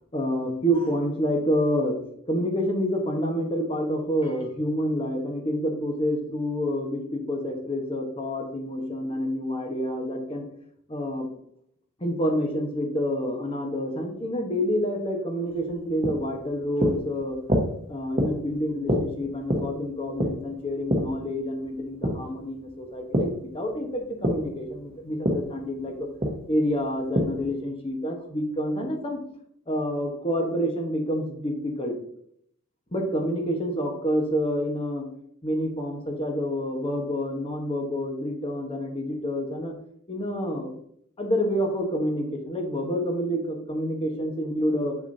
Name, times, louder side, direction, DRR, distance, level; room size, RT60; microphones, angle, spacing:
voice 1, 0.1-2.0 2.3-10.4 10.9-11.3 12.0-17.4 17.9-26.1 26.5-29.2 29.7-31.9 32.9-35.1 35.4-39.7 40.1-40.7 41.2-45.0, equal, 25° left, 2 dB, 1.2 m, -28 dB
sound 1, 15.5-23.4 23.7-27.6, equal, 30° right, 1.1 m, -28 dB
7.1 x 5.9 x 2.7 m, 0.67 s
head